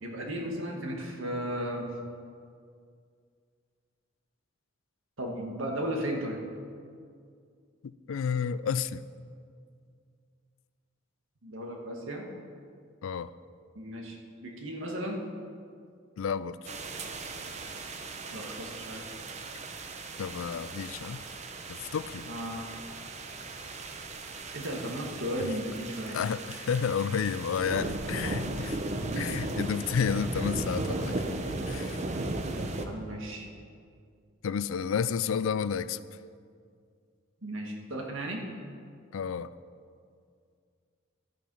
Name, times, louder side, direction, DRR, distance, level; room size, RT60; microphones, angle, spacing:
voice 1, 0.0-1.9 5.2-6.4 11.4-12.3 13.8-15.2 18.3-19.2 22.3-22.7 24.5-26.2 29.1-29.6 32.8-33.5 37.4-38.4, equal, 75° right, 1 dB, 1.7 m, -35 dB
voice 2, 7.8-9.0 13.0-13.3 16.2-16.6 20.2-21.2 21.7-22.3 26.1-28.8 29.2-31.3 31.7-32.0 34.4-36.0 39.1-39.5, left 6 dB, 75° left, 16 dB, 0.4 m, -31 dB
sound 1, 16.6-32.8, right 2 dB, 35° right, 0.7 m, -37 dB
12.5 x 7.5 x 5.5 m, 2.2 s
head